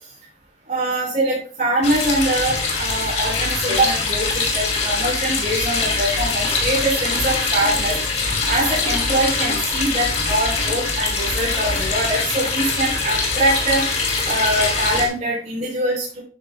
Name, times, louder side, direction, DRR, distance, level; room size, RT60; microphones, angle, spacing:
voice 1, 0.7-7.9 8.5-13.8 14.2-16.2, right 1 dB, 40° right, -6 dB, 5.2 m, -23 dB
sound 1, 1.8-15.1, left 3 dB, 35° left, 2.3 m, -23 dB
11.5 x 9.1 x 2.2 m, 0.38 s
head